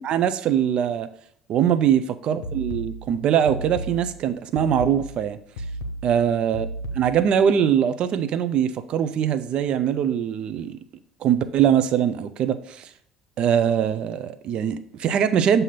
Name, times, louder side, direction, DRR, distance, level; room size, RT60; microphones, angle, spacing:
voice 1, 0.0-1.1 1.5-5.4 6.0-6.7 6.9-10.8 11.2-12.9 13.4-15.6, right 9 dB, 50° right, 12 dB, 0.5 m, -22 dB
sound 1, 2.4-7.4, right 1 dB, 75° left, 0.6 m, -34 dB
7.3 x 2.7 x 5.6 m, 0.66 s
figure-of-eight pair, 60°, 2 cm